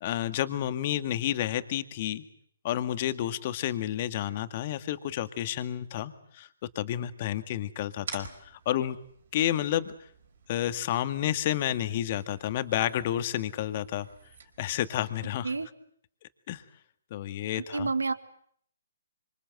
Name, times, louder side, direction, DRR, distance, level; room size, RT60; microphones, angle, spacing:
voice 1, 0.0-2.2 2.6-6.5 6.8-9.0 9.3-9.9 10.5-14.1 14.6-15.5 16.5-16.6 17.1-17.9, left 12 dB, 40° left, 11 dB, 2.0 m, -30 dB
sound 1, 8.0-15.0, right 6 dB, 60° right, 4.9 m, -49 dB
voice 2, 17.5-18.1, right 4 dB, 85° right, 13 dB, 1.8 m, -29 dB
26.5 x 26.0 x 7.9 m, 0.65 s
figure-of-eight pair, 140°, 0 cm